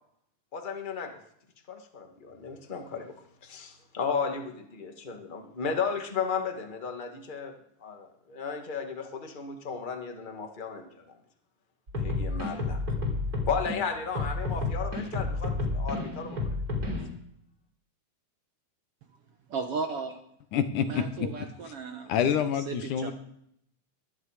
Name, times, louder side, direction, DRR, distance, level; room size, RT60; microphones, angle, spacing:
voice 1, 0.5-1.1 1.7-3.1 3.4-7.5 7.8-11.2 12.0-12.8 13.5-16.5 16.8-16.9, left 5 dB, 30° left, 4 dB, 0.9 m, -34 dB
sound 1, 11.9-13.8 14.2-17.1, left 3 dB, 30° right, 3.6 m, -30 dB
voice 2, 19.5-20.2 20.8-22.1 22.5-23.1, right 5 dB, 65° right, 6 dB, 1.6 m, -35 dB
voice 3, 20.5-21.3 22.1-23.1, left 8 dB, 75° left, 9 dB, 2.6 m, -27 dB
21.5 x 10.5 x 5.0 m, 0.72 s
omnidirectional pair, 3.7 m